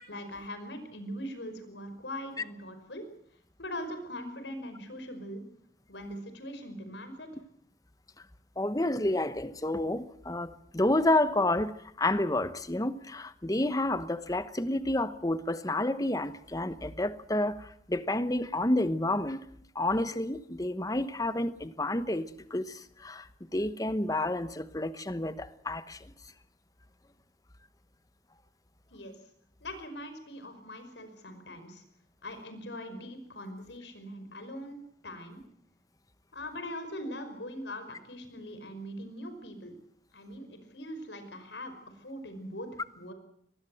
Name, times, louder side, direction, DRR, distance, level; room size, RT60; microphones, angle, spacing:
voice 1, 0.1-3.1 3.6-5.4 5.9-7.3 28.9-29.2 29.6-31.8 32.2-35.4 36.3-39.8 40.1-42.7 42.9-43.1, equal, 85° left, 5.3 m, -41 dB
voice 2, 8.6-11.7 12.0-17.6 17.9-19.4 19.7-22.2 22.5-22.7 23.0-23.2 23.5-26.0, left 1 dB, 20° left, 1.0 m, -29 dB
24.0 x 20.0 x 7.8 m
head